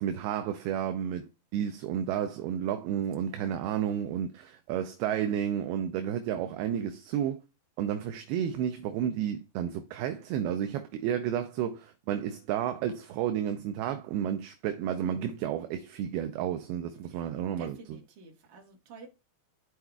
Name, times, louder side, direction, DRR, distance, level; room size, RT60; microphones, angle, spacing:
voice 1, 0.0-7.4 7.8-18.0, right 9 dB, 80° right, 2.3 m, -31 dB
voice 2, 17.1-19.1, right 3 dB, 55° right, 2.6 m, -50 dB
13.0 x 4.4 x 2.3 m
omnidirectional pair, 4.8 m